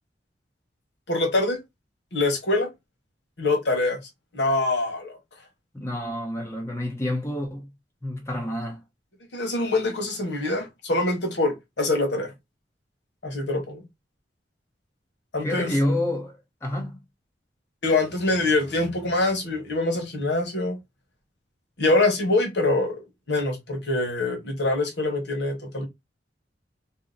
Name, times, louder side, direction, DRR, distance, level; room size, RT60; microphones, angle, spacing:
voice 1, 1.1-1.6 2.1-2.7 3.4-4.0 4.3-5.2 9.3-12.3 13.2-13.8 15.3-15.7 17.8-20.8 21.8-25.9, left 2 dB, 75° left, 1.1 m, -24 dB
voice 2, 5.7-7.7 8.0-8.8 15.4-17.0, left 1 dB, 15° left, 0.9 m, -28 dB
2.8 x 2.1 x 3.7 m
head